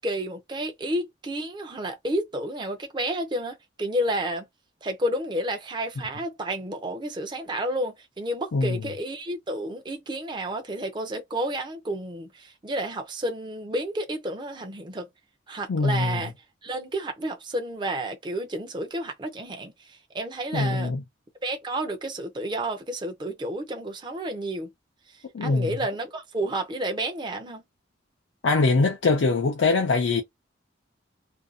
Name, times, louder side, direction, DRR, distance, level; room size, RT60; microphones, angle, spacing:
voice 1, 0.0-4.5 4.8-15.1 15.5-16.3 16.6-20.9 21.4-24.7 25.4-27.6, right 1 dB, 25° right, 0.5 m, -31 dB
voice 2, 15.7-16.2 20.5-21.0 25.3-25.8 28.4-30.2, left 3 dB, 75° left, 0.5 m, -23 dB
2.6 x 2.2 x 2.5 m
head